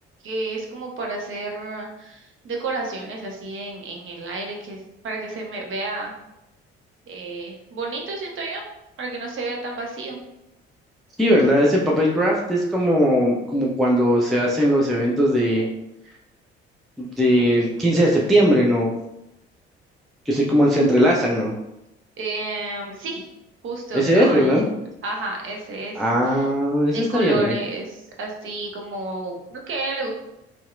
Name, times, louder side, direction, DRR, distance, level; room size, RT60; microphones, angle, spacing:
voice 1, 0.2-6.1 7.1-8.7 9.0-10.2 22.2-23.2 23.6-24.6 25.0-26.5 26.9-30.1, right 2 dB, 40° right, 1 dB, 0.7 m, -31 dB
voice 2, 11.2-15.7 17.0-18.9 20.3-21.5 23.9-24.7 25.9-27.5, equal, ahead, -3 dB, 0.3 m, -19 dB
2.6 x 2.1 x 2.5 m, 0.89 s
figure-of-eight pair, 50°, 32 cm